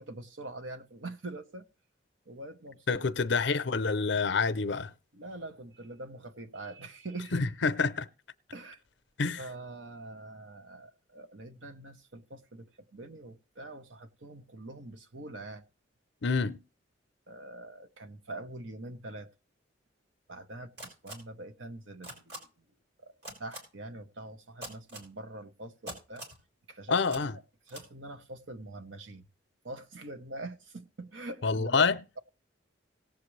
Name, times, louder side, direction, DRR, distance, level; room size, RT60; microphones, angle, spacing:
voice 1, 0.0-1.7 2.3-3.0 5.1-7.7 8.5-8.8 9.4-15.6 17.3-19.3 20.3-22.5 23.0-23.1 23.4-26.2 26.7-27.2 27.7-29.2 29.6-31.9, right 2 dB, 85° right, 1.1 m, -44 dB
voice 2, 2.9-4.9 7.3-8.0 9.2-9.4 16.2-16.6 26.9-27.4 31.4-32.0, left 4 dB, 65° left, 0.6 m, -27 dB
sound 1, 20.8-21.1 22.0-22.4 23.2-23.6 24.6-25.1 25.9-26.4 27.1-27.2 27.7-27.8, right 1 dB, 60° right, 4.2 m, -42 dB
18.0 x 7.5 x 3.2 m
head